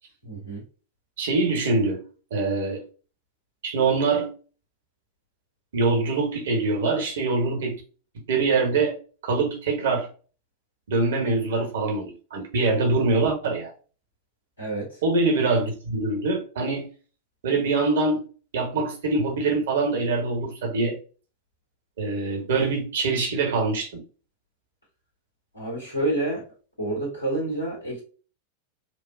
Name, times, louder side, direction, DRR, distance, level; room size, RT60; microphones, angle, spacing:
voice 1, 0.2-0.6 14.6-15.0 25.5-26.4 26.8-28.0, right 2 dB, 80° left, 1.7 m, -28 dB
voice 2, 1.2-2.0 2.3-2.8 3.6-4.3 5.7-7.8 8.3-8.9 9.2-10.1 10.9-13.7 15.0-16.9 17.4-18.2 18.5-21.0 22.0-24.0, right 3 dB, 60° right, 1.2 m, -24 dB
4.5 x 2.4 x 2.6 m
figure-of-eight pair, 90°, 0 cm